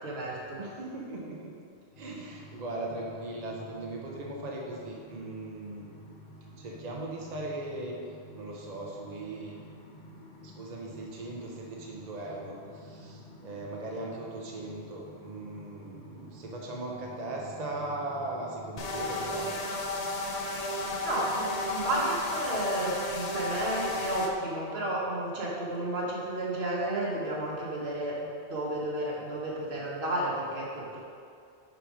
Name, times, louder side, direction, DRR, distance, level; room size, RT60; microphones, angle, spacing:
voice 1, 0.0-0.6 21.0-31.0, right 1 dB, 70° right, -5 dB, 1.6 m, -32 dB
voice 2, 0.6-1.5 2.0-5.9 6.6-8.0 8.3-9.6 10.4-19.8, right 2 dB, 45° right, -2 dB, 0.8 m, -39 dB
sound 1, 1.9-19.6, left 1 dB, 75° left, 1.3 m, -50 dB
sound 2, 18.8-24.3, left 2 dB, 40° left, 0.7 m, -33 dB
5.9 x 5.2 x 5.0 m, 2.3 s
omnidirectional pair, 1.1 m